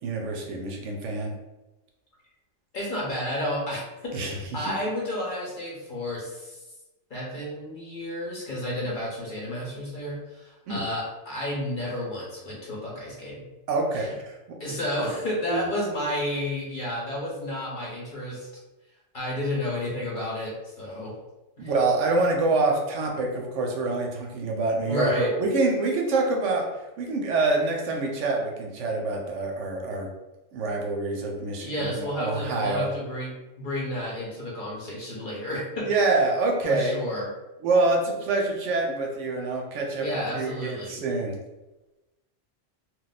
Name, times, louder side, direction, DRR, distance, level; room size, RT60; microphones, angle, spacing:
voice 1, 0.0-1.3 4.1-4.7 10.7-10.8 13.7-14.6 15.5-15.6 21.6-30.1 30.5-32.9 35.9-36.9 37.6-40.1 40.3-41.4, right 3 dB, 75° right, 1 dB, 0.9 m, -26 dB
voice 2, 2.7-6.6 7.1-13.4 13.9-14.1 14.6-18.5 19.1-21.1 21.6-21.7 24.8-25.3 29.9-30.0 31.6-33.3 33.6-35.9 36.6-37.3 40.0-41.0, left 1 dB, 45° left, -5 dB, 0.8 m, -31 dB
2.4 x 2.1 x 4.0 m, 1.1 s
omnidirectional pair, 1.3 m